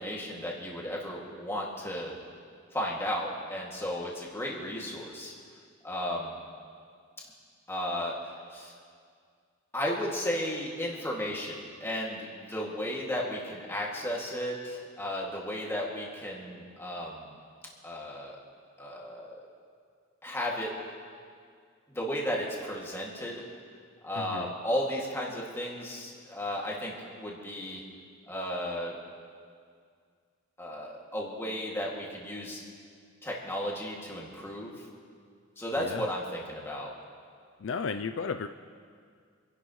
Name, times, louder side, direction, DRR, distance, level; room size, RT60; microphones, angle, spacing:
voice 1, 0.0-2.1 2.7-5.3 5.8-6.4 7.7-8.2 8.5-8.7 9.7-17.3 17.8-18.4 18.8-19.4 20.2-20.7 21.9-23.4 24.0-27.8 28.3-29.0 30.6-32.6 33.2-34.9 35.6-36.9, equal, 10° left, -4 dB, 2.2 m, -34 dB
voice 2, 24.2-24.5 35.8-36.1 37.6-38.5, left 5 dB, 65° left, 8 dB, 0.4 m, -34 dB
27.5 x 11.5 x 3.2 m, 2.1 s
head